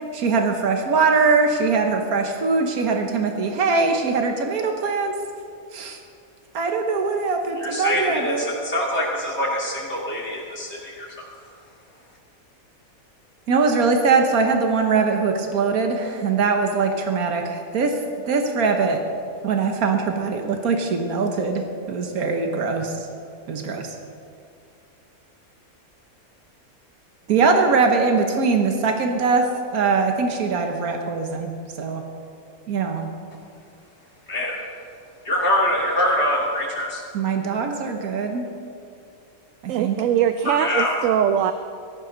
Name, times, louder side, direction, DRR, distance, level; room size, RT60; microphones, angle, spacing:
voice 1, 0.1-5.1 5.7-6.0 6.5-8.4 13.5-17.9 18.3-19.0 19.4-22.9 23.5-23.9 27.3-29.5 29.7-31.5 31.8-32.0 32.7-33.1 37.1-38.5 39.6-40.0, right 4 dB, 85° right, 4 dB, 1.6 m, -22 dB
voice 2, 7.6-11.1 34.3-34.6 35.2-37.0 40.4-40.9, left 1 dB, 50° left, -3 dB, 2.9 m, -24 dB
voice 3, 39.7-41.5, right 9 dB, 70° right, 9 dB, 0.9 m, -21 dB
17.5 x 14.5 x 4.0 m, 2.4 s
omnidirectional pair, 1.5 m